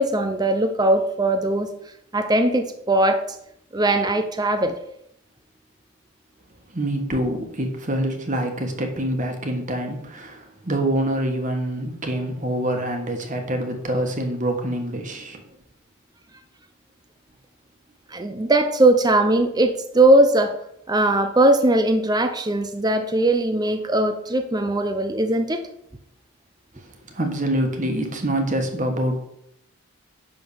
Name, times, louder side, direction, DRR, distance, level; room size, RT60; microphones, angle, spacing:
voice 1, 0.0-1.7 2.1-3.2 3.7-4.8 18.1-20.5 20.9-25.6, right 1 dB, 20° right, 7 dB, 0.6 m, -19 dB
voice 2, 6.7-15.4 27.1-29.2, right 1 dB, 35° right, 4 dB, 1.5 m, -25 dB
11.0 x 3.8 x 7.0 m, 0.75 s
head